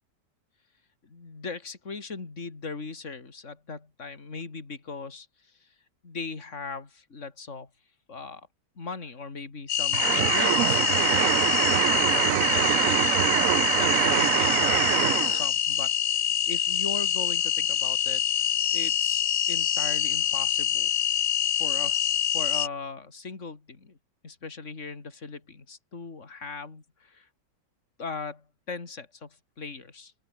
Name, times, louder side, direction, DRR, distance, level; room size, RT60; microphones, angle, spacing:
voice 1, 1.0-5.7 6.0-7.7 8.1-8.5 8.8-11.5 12.1-13.1 13.7-18.2 18.7-20.9 21.6-22.0 22.3-24.0 24.2-27.3 28.0-30.1, left 4 dB, 40° left, 3.3 m, -39 dB
sound 1, 9.7-22.7, left 10 dB, 70° left, 1.6 m, -25 dB
sound 2, 9.9-15.4, right 13 dB, 65° right, 0.8 m, -24 dB
open air
omnidirectional pair, 1.9 m